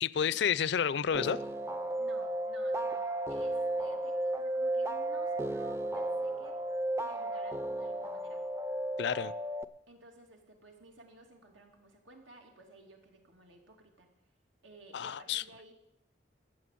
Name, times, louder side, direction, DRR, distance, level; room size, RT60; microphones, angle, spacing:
voice 1, 0.0-1.4 9.0-9.3 14.9-15.4, left 8 dB, 60° left, 0.4 m, -30 dB
sound 1, 1.1-9.6, right 1 dB, 15° right, 0.4 m, -34 dB
voice 2, 2.0-6.6 7.0-8.4 9.9-14.1 14.6-15.7, right 2 dB, 90° right, 2.8 m, -56 dB
14.0 x 7.4 x 8.4 m
head